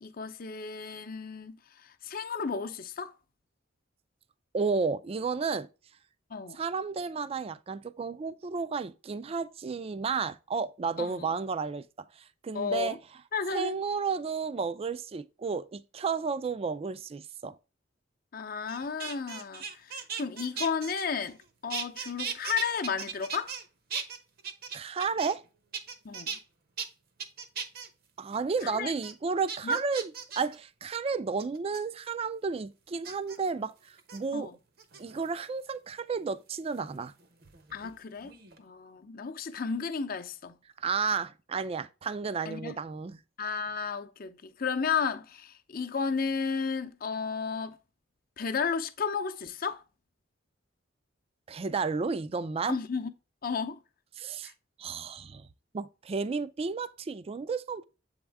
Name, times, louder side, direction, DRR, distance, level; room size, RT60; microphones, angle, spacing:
voice 1, 0.0-3.1 6.3-6.6 11.0-11.3 12.5-13.0 13.3-13.8 18.3-21.4 21.6-23.5 26.0-26.4 28.6-28.9 29.6-29.8 34.3-34.5 37.7-38.3 38.6-40.6 42.5-42.8 43.4-47.8 48.4-49.8 52.7-53.1 53.4-53.8 54.4-54.5, left 5 dB, 50° left, 0.6 m, -33 dB
voice 2, 4.5-5.7 6.5-11.9 12.2-13.0 13.5-17.6 24.7-25.4 28.2-34.5 35.0-37.1 40.8-43.2 51.5-52.8 54.2-54.5 54.8-55.5 55.7-57.8, right 5 dB, 30° right, 0.4 m, -32 dB
sound 1, 18.7-21.4 21.7-23.6 23.9-25.5 25.7-26.4 26.8-26.9 27.2-27.9 28.3-28.7 29.0-29.1 29.5-30.6 31.4-31.8 33.0-33.4 34.0-34.2 34.8-35.4 36.8-38.0 38.2-38.6, right 6 dB, 55° right, 0.8 m, -38 dB
7.9 x 3.6 x 3.4 m
head